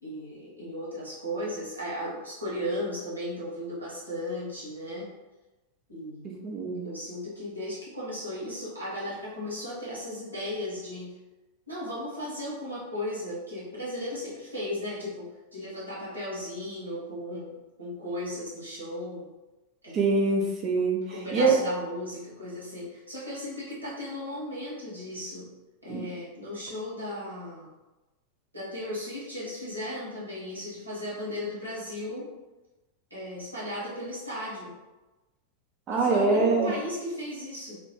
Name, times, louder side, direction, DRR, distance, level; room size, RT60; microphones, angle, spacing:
voice 1, 0.0-5.1 5.9-6.3 6.8-11.1 11.7-15.3 15.5-19.3 19.8-20.3 21.1-25.5 25.8-27.7 28.5-32.3 33.1-34.7 35.9-37.8, left 1 dB, 80° right, -8 dB, 1.0 m, -36 dB
voice 2, 6.4-6.8 19.9-21.0 21.3-21.5 25.9-26.0 35.9-36.7, right 4 dB, 30° right, -1 dB, 0.5 m, -24 dB
2.2 x 2.1 x 2.9 m, 1.1 s
figure-of-eight pair, 90°, 0 cm